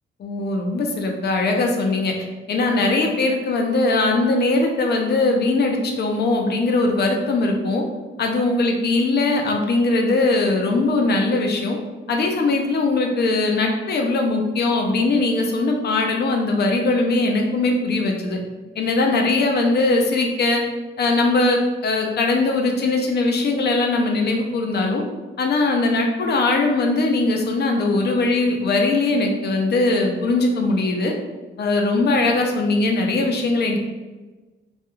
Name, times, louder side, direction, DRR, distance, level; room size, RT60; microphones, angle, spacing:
voice 1, 0.2-2.1 2.5-7.8 8.2-11.8 12.1-18.4 18.8-20.6 21.0-25.0 25.4-31.1 31.6-33.8, left 2 dB, 55° left, 2 dB, 0.4 m, -20 dB
2.3 x 2.2 x 3.0 m, 1.2 s
wide cardioid pair, 135°, 21 cm